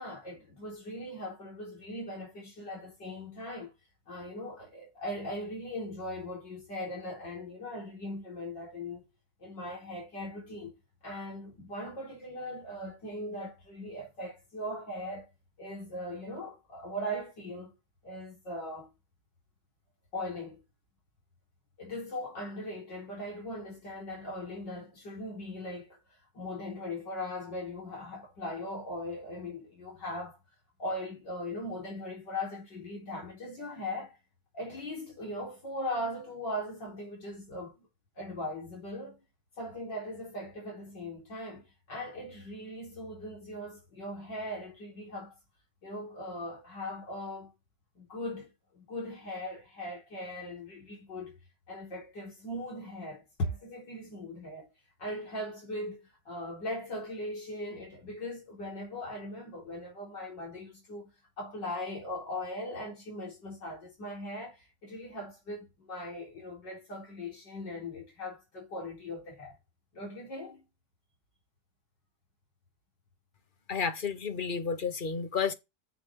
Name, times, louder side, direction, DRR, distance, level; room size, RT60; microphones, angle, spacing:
voice 1, 0.0-3.7 4.1-9.1 9.4-10.7 11.0-15.3 15.6-17.7 18.0-18.9 20.1-20.6 21.8-26.0 26.3-30.4 30.8-34.2 34.5-37.9 38.2-39.2 39.6-45.3 45.8-47.5 48.0-51.3 51.7-54.7 55.0-61.1 61.4-69.6 69.9-70.6, left 1 dB, 85° left, 4.7 m, -39 dB
voice 2, 73.7-75.5, left 6 dB, 35° left, 1.0 m, -31 dB
9.7 x 6.5 x 3.7 m
omnidirectional pair, 1.9 m